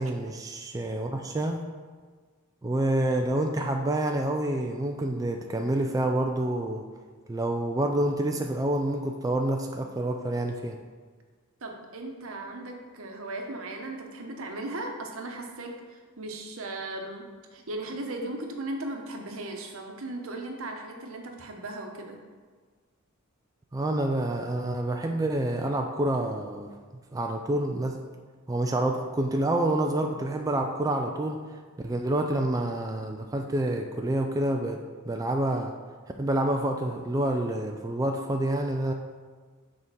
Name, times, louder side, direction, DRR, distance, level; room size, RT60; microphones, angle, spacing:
voice 1, 0.0-1.7 2.6-6.8 7.3-10.8 23.7-26.7 27.1-28.0 28.5-31.4 31.8-35.7 36.2-38.9, right 1 dB, 15° right, 3 dB, 0.3 m, -28 dB
voice 2, 11.6-17.3 17.5-22.2, right 2 dB, 70° right, 3 dB, 1.0 m, -37 dB
6.6 x 3.6 x 6.1 m, 1.5 s
head